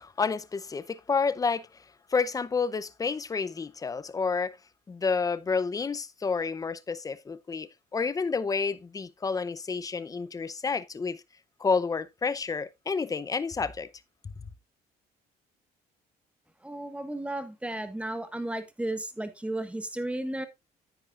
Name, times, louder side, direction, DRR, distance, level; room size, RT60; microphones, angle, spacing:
voice 1, 0.0-4.6 4.9-11.2 11.6-13.9 14.2-14.5, left 5 dB, 20° left, 0.6 m, -30 dB
voice 2, 16.6-20.5, right 1 dB, 5° right, 1.3 m, -34 dB
10.0 x 8.9 x 2.4 m
cardioid pair, 110°, 17 cm